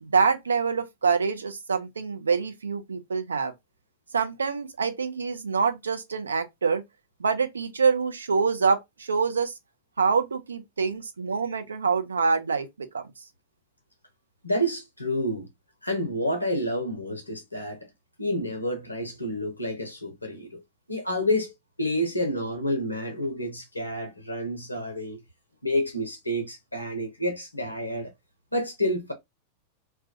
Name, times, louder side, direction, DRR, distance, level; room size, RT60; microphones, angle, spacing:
voice 1, 0.0-3.5 4.1-6.8 7.2-9.5 10.0-13.0, right 5 dB, 75° right, 0.4 m, -25 dB
voice 2, 14.4-15.5 15.8-17.8 18.2-20.6 20.9-25.2 25.6-28.1 28.5-29.1, equal, 85° left, 0.5 m, -29 dB
2.2 x 2.2 x 2.6 m
figure-of-eight pair, 90°, 0 cm